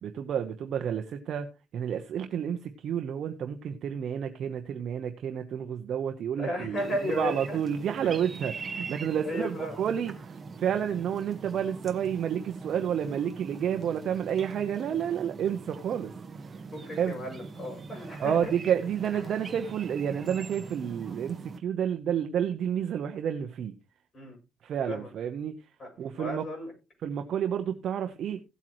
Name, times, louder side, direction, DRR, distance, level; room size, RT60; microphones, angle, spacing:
voice 1, 0.0-16.1 16.4-17.2 18.2-23.8 24.6-25.7 26.0-26.5 27.0-28.4, right 8 dB, 55° right, 1.0 m, -30 dB
voice 2, 6.4-7.6 8.0-8.1 9.2-9.8 16.7-18.4 24.1-24.4 24.9-25.1 25.8-25.9 26.2-26.7, left 1 dB, 35° left, 7.7 m, -34 dB
sound 1, 6.8-21.6, right 4 dB, 25° right, 1.4 m, -42 dB
16.5 x 8.3 x 3.1 m
cardioid pair, 135°, 0 cm